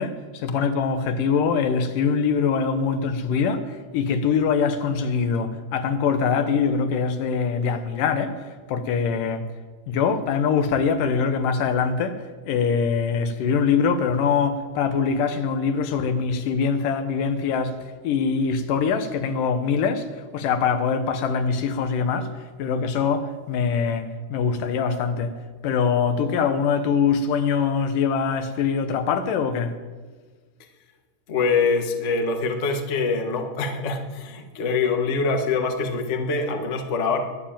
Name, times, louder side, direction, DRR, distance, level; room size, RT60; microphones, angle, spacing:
voice 1, 0.0-8.4 8.7-9.5 9.9-17.8 18.0-22.3 22.6-25.3 25.6-29.8, left 6 dB, 75° left, 2.7 m, -23 dB
voice 2, 31.3-37.2, left 4 dB, 55° left, 0.8 m, -24 dB
22.0 x 7.4 x 9.0 m
omnidirectional pair, 3.9 m